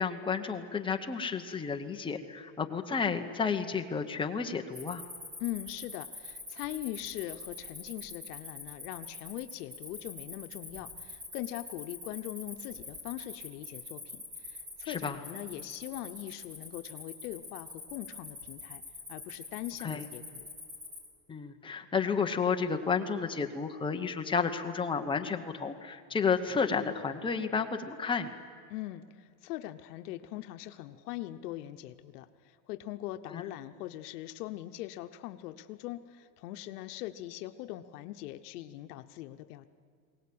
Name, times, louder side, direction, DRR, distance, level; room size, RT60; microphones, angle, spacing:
voice 1, 0.0-5.0 14.8-15.2 19.8-20.1 21.3-28.4 33.3-33.4, left 5 dB, 10° left, 5 dB, 1.0 m, -31 dB
Cricket, 4.7-21.1, left 3 dB, 15° right, 5.9 m, -45 dB
voice 2, 5.4-18.8 19.1-20.5 28.7-39.7, left 15 dB, 85° left, 9 dB, 1.0 m, -41 dB
22.0 x 18.0 x 8.6 m, 2.1 s
supercardioid pair, 150°, 45 cm